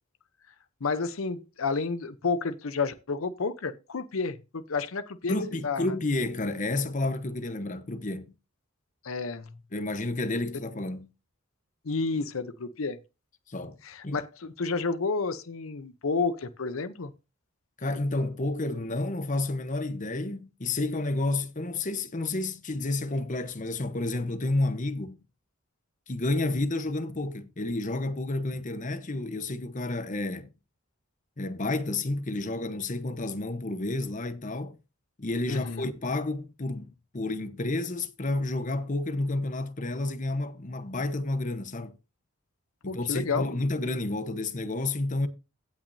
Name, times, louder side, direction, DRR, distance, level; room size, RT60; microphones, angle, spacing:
voice 1, 0.8-5.4 5.6-5.8 9.0-9.5 11.8-13.0 13.8-17.1 35.5-35.9 42.9-43.6, left 4 dB, 80° left, 0.7 m, -30 dB
voice 2, 5.3-8.3 9.7-11.1 13.5-13.8 14.0-14.2 17.8-25.2 26.1-30.5 31.4-34.8 35.2-36.9 37.1-41.9 42.8-45.3, left 2 dB, 40° left, 0.9 m, -30 dB
16.5 x 5.9 x 2.7 m
head